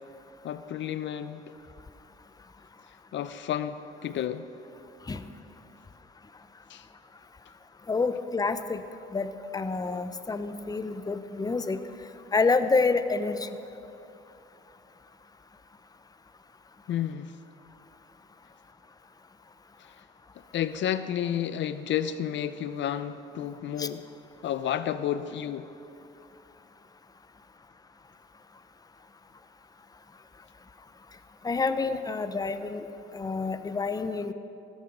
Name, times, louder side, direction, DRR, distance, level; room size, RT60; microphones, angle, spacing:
voice 1, 0.4-1.4 3.1-4.5 6.7-6.9 16.9-17.3 19.8-19.9 20.5-24.0 24.4-25.7, left 10 dB, 70° left, 13 dB, 0.6 m, -31 dB
voice 2, 7.9-8.8 9.1-11.8 12.3-13.5 23.8-23.9 31.4-32.8 33.1-34.3, left 4 dB, 20° left, 11 dB, 0.7 m, -28 dB
15.5 x 13.5 x 5.3 m, 2.8 s
cardioid pair, 90°, 20 cm